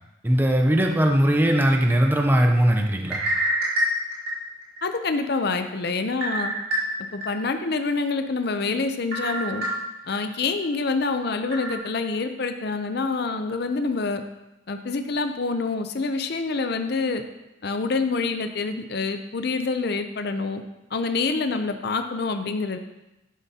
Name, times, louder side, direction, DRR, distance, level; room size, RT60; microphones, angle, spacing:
voice 1, 0.2-3.2, right 1 dB, 10° right, 3 dB, 0.6 m, -20 dB
sound 1, 3.0-4.8 5.3-5.4 6.2-7.3 7.7-7.8 9.1-10.2 10.6-10.7 11.5-11.8, equal, 50° right, 2.6 m, -27 dB
voice 2, 4.8-6.5 7.1-9.6 10.1-14.2 14.7-17.2 17.6-20.6 20.9-22.8, left 3 dB, 55° left, 8 dB, 0.6 m, -26 dB
11.0 x 7.1 x 2.8 m, 0.96 s
head